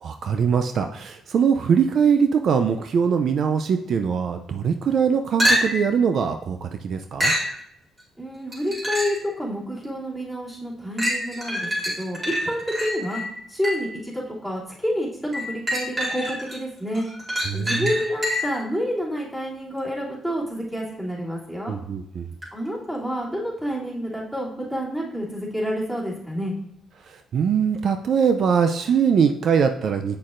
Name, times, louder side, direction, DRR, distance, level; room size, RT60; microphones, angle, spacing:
voice 1, 0.0-7.3 17.5-17.9 21.7-22.3 27.0-30.2, right 6 dB, 60° right, 6 dB, 0.4 m, -22 dB
sound 1, 5.4-6.0 7.2-7.5 8.5-9.3 9.8-9.9 11.0-14.0 15.3-16.6 16.9-18.6 22.4-22.5, equal, 30° right, 2.6 m, -26 dB
voice 2, 8.2-12.2 12.4-13.2 13.5-17.1 17.5-21.8 22.5-26.5, equal, 10° right, -6 dB, 2.7 m, -29 dB
7.5 x 6.3 x 2.5 m, 0.74 s
cardioid pair, 90°, 0 cm